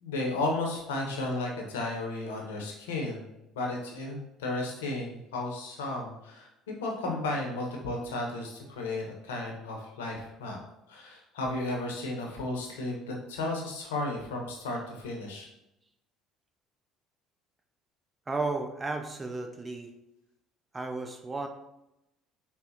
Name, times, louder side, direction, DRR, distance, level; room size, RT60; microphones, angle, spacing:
voice 1, 0.0-6.5 6.8-10.6 10.9-15.5, left 2 dB, 80° left, 0 dB, 0.6 m, -34 dB
voice 2, 18.3-19.9 20.7-21.5, right 3 dB, 25° right, 4 dB, 0.4 m, -33 dB
3.9 x 2.0 x 2.6 m, 0.88 s
hypercardioid pair, 60°, 0 cm